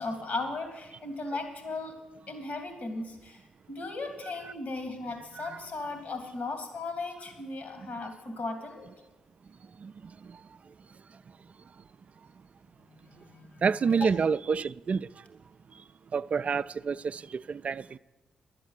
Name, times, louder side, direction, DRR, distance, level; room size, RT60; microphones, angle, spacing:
voice 1, 0.0-2.0 2.3-3.4 3.7-8.9 12.9-13.6 13.9-14.1, left 3 dB, 65° left, 2.8 m, -36 dB
voice 2, 13.6-15.1 16.1-18.0, right 5 dB, 50° right, 0.3 m, -28 dB
11.5 x 8.1 x 8.1 m
hypercardioid pair, 40°, 3 cm